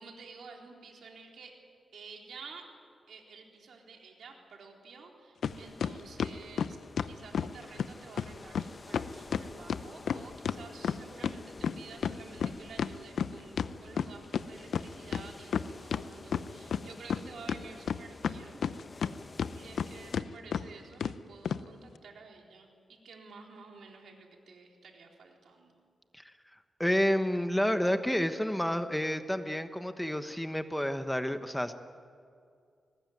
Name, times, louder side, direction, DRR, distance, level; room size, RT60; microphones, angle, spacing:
voice 1, 0.0-1.7 1.9-2.7 3.1-18.6 19.5-25.7, right 4 dB, 80° right, 1 dB, 4.1 m, -51 dB
sound 1, 5.4-5.5 5.8-7.5 7.8-7.9 8.2-8.3 8.5-8.7 8.9-11.4 11.6-14.4 14.7-14.8 15.1-16.0 16.3-17.2 17.5-19.1 19.4-19.9 20.1-20.3 20.5-20.6 21.0-21.1 21.5-21.6, left 7 dB, 85° left, 0.7 m, -31 dB
sound 2, 5.4-20.2, left 3 dB, 35° left, 1.3 m, -51 dB
voice 2, 26.8-31.7, equal, 5° left, 9 dB, 1.1 m, -29 dB
22.5 x 19.5 x 9.4 m, 2.3 s
wide cardioid pair, 105°, 0 cm